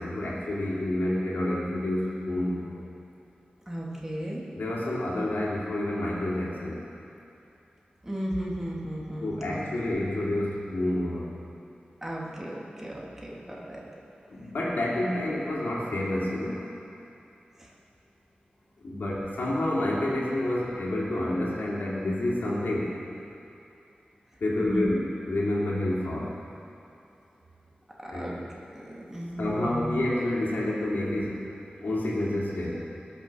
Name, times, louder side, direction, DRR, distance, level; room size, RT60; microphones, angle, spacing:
voice 1, 0.0-2.7 4.5-6.8 9.2-11.3 14.3-16.6 18.8-23.0 24.4-26.3 28.1-28.4 29.4-31.4 31.8-32.8, left 1 dB, 90° left, -5 dB, 3.2 m, -29 dB
voice 2, 3.7-4.4 8.0-9.6 12.0-13.8 17.6-17.7 24.6-24.9 28.0-28.4 28.7-30.0, equal, 15° right, -4 dB, 2.7 m, -35 dB
20.5 x 7.4 x 6.3 m, 2.7 s
wide cardioid pair, 85°, 3 cm